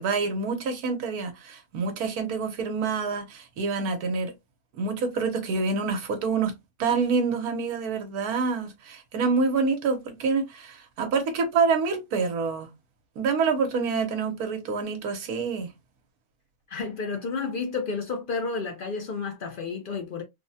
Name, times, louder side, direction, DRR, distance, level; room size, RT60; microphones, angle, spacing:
voice 1, 0.0-4.3 4.7-6.5 6.8-12.7 13.2-15.7, right 4 dB, 90° right, 1.3 m, -27 dB
voice 2, 16.7-20.2, left 4 dB, 55° left, 0.6 m, -31 dB
3.4 x 2.1 x 2.6 m
omnidirectional pair, 1.5 m